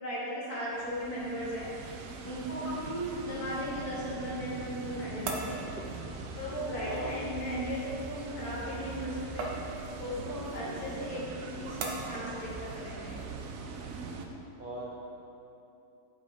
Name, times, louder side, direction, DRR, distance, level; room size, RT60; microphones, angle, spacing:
voice 1, 0.0-1.7 2.2-5.6 6.4-9.5 10.0-13.2, equal, 60° left, -7 dB, 2.8 m, -36 dB
sound 1, 0.7-14.3, right 4 dB, 60° right, 1.0 m, -42 dB
sound 2, 2.9-13.7, right 3 dB, 85° right, 1.6 m, -44 dB
voice 2, 6.8-7.1 10.6-11.0 14.6-15.0, right 2 dB, 45° right, -4 dB, 0.7 m, -40 dB
8.2 x 6.6 x 5.1 m, 2.9 s
omnidirectional pair, 1.8 m